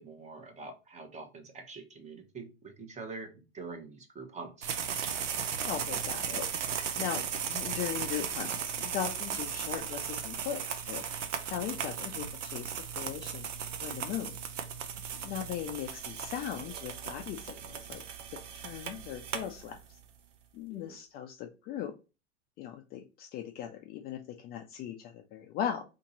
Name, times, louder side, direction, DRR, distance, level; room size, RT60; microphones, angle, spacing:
voice 1, 0.0-4.7 20.7-21.0, right 4 dB, 20° right, 5 dB, 0.8 m, -45 dB
sound 1, 4.6-20.0, right 7 dB, 85° right, 0.6 m, -36 dB
voice 2, 5.6-11.0 11.4-13.5 13.8-14.3 15.1-18.0 18.5-20.0 20.5-21.9 22.6-25.8, left 10 dB, 30° left, 4 dB, 0.4 m, -39 dB
2.8 x 2.8 x 3.9 m, 0.30 s
hypercardioid pair, 105°, 35 cm